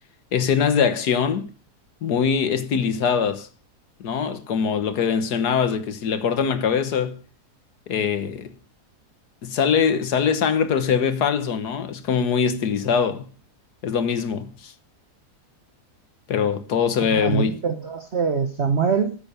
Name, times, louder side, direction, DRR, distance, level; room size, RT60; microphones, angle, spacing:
voice 1, 0.3-1.5 2.0-3.5 4.0-7.2 7.9-8.5 9.4-13.3 13.8-14.7 16.3-17.6, left 7 dB, 80° left, 1.7 m, -22 dB
voice 2, 17.2-19.2, right 6 dB, 45° right, 1.1 m, -23 dB
13.5 x 7.8 x 6.8 m
omnidirectional pair, 1.7 m